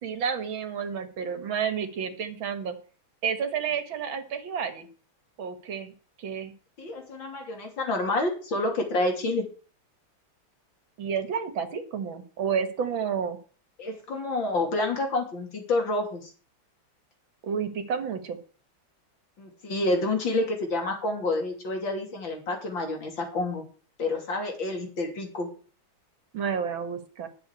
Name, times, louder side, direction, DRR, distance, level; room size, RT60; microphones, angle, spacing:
voice 1, 0.0-2.7 3.2-4.9 5.4-5.9 6.2-6.5 11.0-13.4 17.4-18.4 26.3-27.3, right 7 dB, 75° right, 8 dB, 2.5 m, -30 dB
voice 2, 6.8-9.5 13.8-16.3 19.4-23.6 24.0-25.5, left 2 dB, 70° left, 3 dB, 3.7 m, -28 dB
11.5 x 7.3 x 8.3 m, 0.40 s
omnidirectional pair, 2.2 m